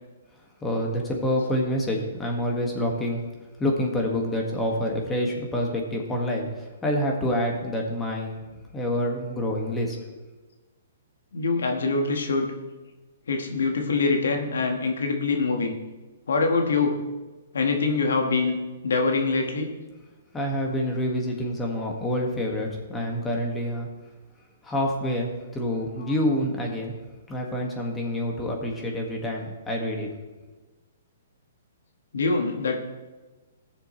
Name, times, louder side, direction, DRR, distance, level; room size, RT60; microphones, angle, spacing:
voice 1, 0.6-3.2 3.6-8.4 8.7-10.0 20.3-23.9 24.6-26.9 27.3-30.1, left 1 dB, 10° left, 0 dB, 1.8 m, -27 dB
voice 2, 11.3-12.5 13.3-15.7 16.3-17.0 17.5-18.5 18.8-19.7 32.1-32.7, left 4 dB, 80° left, 3 dB, 1.6 m, -24 dB
16.5 x 7.0 x 3.2 m, 1.2 s
hypercardioid pair, 140°, 0 cm